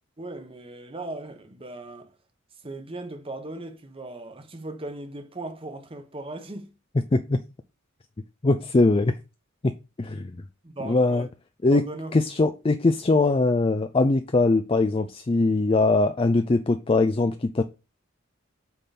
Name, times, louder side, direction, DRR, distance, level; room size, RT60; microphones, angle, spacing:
voice 1, 0.2-2.1 2.6-6.7 10.6-11.3 11.7-12.2, right 2 dB, 25° right, 1.1 m, -38 dB
voice 2, 8.4-9.2 9.6-9.7 10.0-10.4 10.9-11.3 11.6-11.8 12.1-17.6, left 3 dB, 25° left, 0.4 m, -21 dB
8.3 x 3.8 x 4.2 m
head